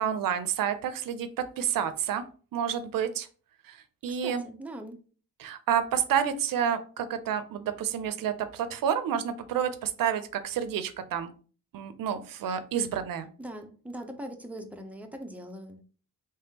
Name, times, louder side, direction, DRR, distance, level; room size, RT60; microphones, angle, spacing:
voice 1, 0.0-2.3 2.5-3.3 3.7-3.8 4.0-4.4 5.4-11.3 11.7-13.3, right 8 dB, 75° right, 0.5 m, -29 dB
voice 2, 4.1-5.0 13.4-15.8, right 1 dB, 5° right, 0.7 m, -41 dB
3.4 x 3.2 x 2.8 m
cardioid pair, 70°, 34 cm